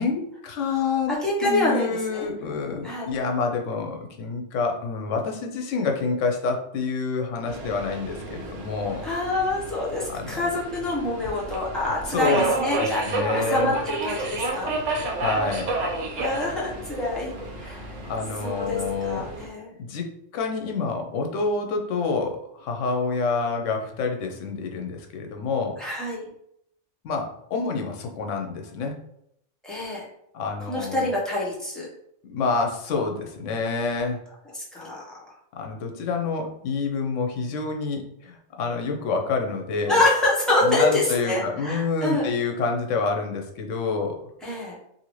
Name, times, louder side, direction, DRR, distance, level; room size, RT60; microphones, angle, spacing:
voice 1, 0.0-9.0 10.1-10.4 12.1-12.5 12.8-13.7 15.2-15.7 18.0-19.3 19.8-20.1 20.3-25.8 27.0-29.0 30.3-31.1 32.2-34.2 35.5-40.0 40.6-44.2, left 4 dB, 80° left, 3 dB, 0.9 m, -27 dB
voice 2, 1.1-2.3 2.8-3.1 9.0-14.7 16.2-17.9 18.4-19.7 25.8-26.3 29.6-30.0 30.6-31.9 34.5-35.1 39.9-42.3 44.4-44.8, left 2 dB, ahead, -7 dB, 0.7 m, -26 dB
Subway metro underground, 7.5-19.5, right 2 dB, 80° right, 1.0 m, -31 dB
2.7 x 2.5 x 3.0 m, 0.74 s
omnidirectional pair, 1.3 m